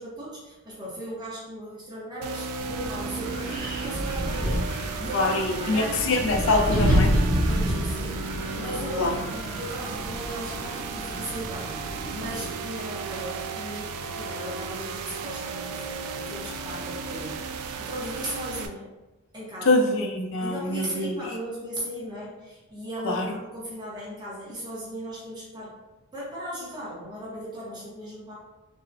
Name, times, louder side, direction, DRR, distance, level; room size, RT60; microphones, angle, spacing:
voice 1, 0.0-6.1 7.4-8.2 8.5-18.9 19.3-19.8 20.4-25.8 26.1-28.3, right 1 dB, 20° right, -7 dB, 0.7 m, -37 dB
sound 1, 2.2-18.7, right 5 dB, 90° right, 0.3 m, -35 dB
Wind, 2.6-12.6, equal, 35° right, 1.5 m, -29 dB
voice 2, 5.1-7.1 9.0-9.1 19.6-21.2 23.0-23.3, left 2 dB, 55° left, 2 dB, 0.4 m, -24 dB
3.7 x 2.0 x 2.6 m, 1.1 s
head